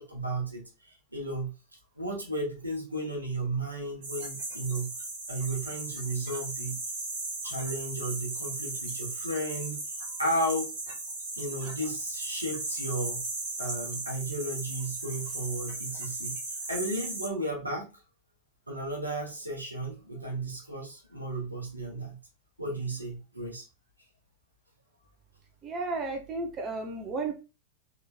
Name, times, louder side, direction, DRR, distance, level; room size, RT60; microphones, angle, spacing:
voice 1, 0.1-0.6 1.1-1.5 2.0-4.9 5.3-6.8 7.4-9.8 10.0-10.7 11.4-13.3 13.6-16.4 16.7-17.9 18.7-22.2 22.6-23.6, right 1 dB, 85° right, -1 dB, 1.0 m, -34 dB
sound 1, 4.0-17.3, right 2 dB, 55° right, 1.2 m, -37 dB
voice 2, 25.6-27.3, right 3 dB, 30° right, 3 dB, 0.6 m, -33 dB
3.0 x 2.4 x 2.3 m, 0.29 s
figure-of-eight pair, 90°, 0 cm